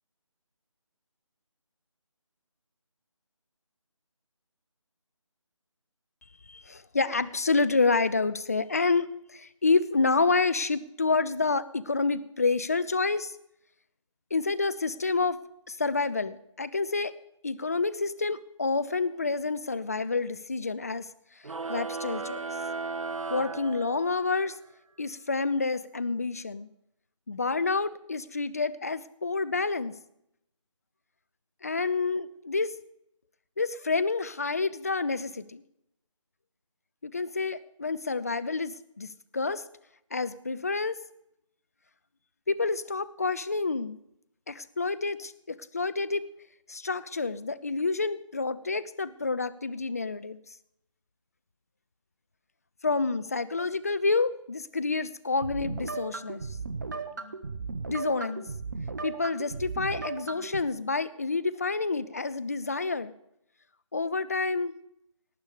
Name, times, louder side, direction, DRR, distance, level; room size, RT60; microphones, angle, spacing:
voice 1, 6.5-13.3 14.3-15.4 15.7-17.1 17.4-21.1 21.7-22.4 23.3-24.6 25.0-26.7 27.3-29.9 31.6-32.7 33.6-35.6 37.0-39.6 40.1-41.0 42.5-44.0 44.5-46.2 46.7-50.4 52.8-56.4 57.9-58.4 59.0-63.1 63.9-64.7, left 4 dB, 30° left, 14 dB, 0.5 m, -28 dB
sound 1, 21.4-24.4, right 4 dB, 75° right, 0.6 m, -35 dB
sound 2, 55.4-60.6, right 4 dB, 35° right, 1.0 m, -36 dB
18.5 x 8.1 x 5.0 m, 0.78 s
figure-of-eight pair, 160°, 17 cm